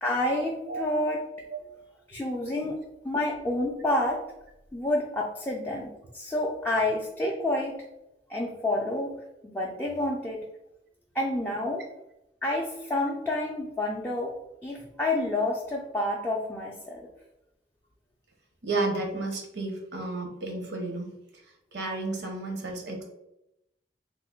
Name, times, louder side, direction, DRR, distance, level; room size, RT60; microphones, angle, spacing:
voice 1, 0.0-1.2 2.1-2.8 3.0-4.2 4.7-7.8 8.3-9.1 9.4-10.4 11.1-11.9 12.4-14.3 14.6-17.1, left 1 dB, 10° left, -3 dB, 0.3 m, -29 dB
voice 2, 18.6-21.4 21.7-23.0, right 2 dB, 70° right, 2 dB, 0.8 m, -32 dB
3.1 x 2.1 x 3.5 m, 0.86 s
head